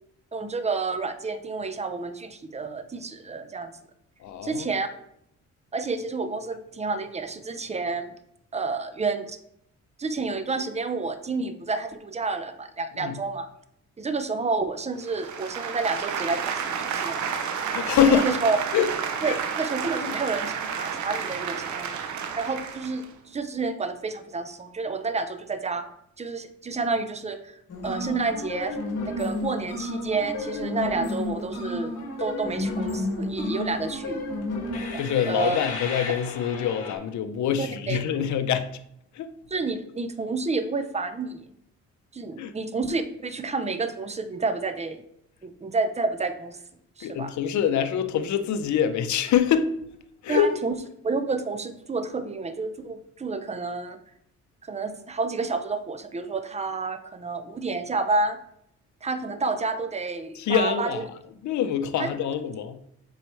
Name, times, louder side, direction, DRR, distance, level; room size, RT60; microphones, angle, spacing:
voice 1, 0.3-3.7 4.4-4.9 5.7-8.1 8.5-9.4 10.0-13.5 14.0-17.3 18.0-18.6 19.2-22.0 22.4-25.8 26.2-28.8 29.1-31.9 32.2-34.2 34.9-35.0 35.3-35.6 37.6-38.0 39.5-41.5 42.1-45.0 45.4-46.6 47.0-47.3 50.3-50.8 51.0-54.0 54.6-58.4 59.0-61.0 62.0-62.1, right 3 dB, 20° right, 0.7 m, -29 dB
voice 2, 4.2-4.7 13.0-13.2 17.7-18.3 18.7-18.9 19.2-19.4 20.0-20.1 35.0-38.7 39.1-39.3 42.4-42.5 47.0-49.8 50.2-50.5 60.4-61.1 61.4-62.8, left 9 dB, 70° left, 0.7 m, -25 dB
sound 1, 15.0-23.1, right 7 dB, 70° right, 0.8 m, -31 dB
sound 2, 27.7-36.9, left 2 dB, 55° left, 1.9 m, -32 dB
7.7 x 4.6 x 3.2 m
cardioid pair, 90°, 30 cm